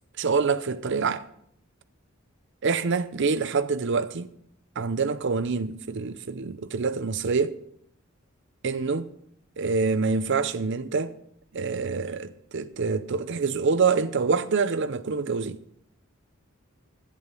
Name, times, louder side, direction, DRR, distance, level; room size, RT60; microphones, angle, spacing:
voice 1, 0.2-1.3 2.6-4.3 4.8-7.6 8.6-9.1 9.6-11.1 11.5-15.6, right 4 dB, 60° right, 0.6 m, -26 dB
11.0 x 10.0 x 5.4 m
head